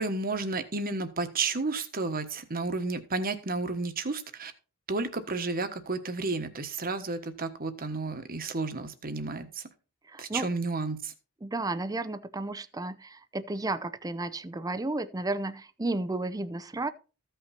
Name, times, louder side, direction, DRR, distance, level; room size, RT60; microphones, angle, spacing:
voice 1, 0.0-4.5 4.9-9.6 10.2-11.1, right 3 dB, 40° right, 1.3 m, -32 dB
voice 2, 10.1-10.5 11.4-16.9, right 2 dB, 15° right, 0.6 m, -33 dB
14.5 x 5.8 x 4.3 m
head